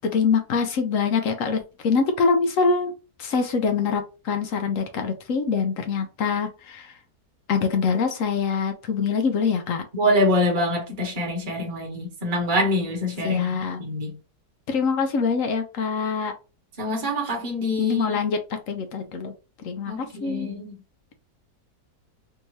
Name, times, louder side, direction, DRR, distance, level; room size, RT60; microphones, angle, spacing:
voice 1, 0.1-2.9 3.2-6.9 7.5-9.8 13.2-13.8 14.7-16.3 17.8-18.4 18.7-19.3 19.6-20.5, left 5 dB, 65° left, 0.9 m, -24 dB
voice 2, 9.9-14.2 16.8-18.2 19.9-20.8, left 1 dB, 30° right, 1.2 m, -25 dB
3.5 x 2.7 x 3.1 m
omnidirectional pair, 1.8 m